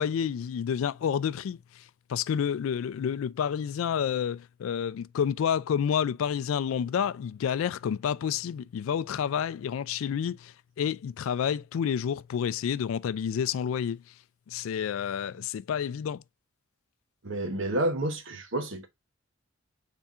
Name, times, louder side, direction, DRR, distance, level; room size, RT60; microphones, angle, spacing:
voice 1, 0.0-1.6 2.1-14.0 14.5-16.2, left 8 dB, 75° left, 0.3 m, -29 dB
voice 2, 17.2-18.9, right 1 dB, 65° right, 0.9 m, -29 dB
4.2 x 3.5 x 3.5 m
head